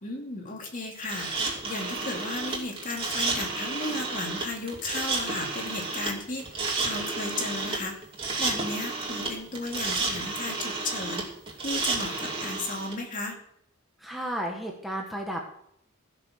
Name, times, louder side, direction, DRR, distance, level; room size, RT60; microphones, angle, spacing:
voice 1, 0.0-1.3 1.6-7.9 8.4-11.2 11.6-13.4, left 2 dB, 40° left, 1 dB, 2.6 m, -34 dB
sound 1, 1.0-12.9, right 3 dB, 25° right, 2.8 m, -31 dB
voice 2, 14.0-15.4, equal, ahead, 0 dB, 1.5 m, -33 dB
16.0 x 6.7 x 6.4 m, 0.70 s
head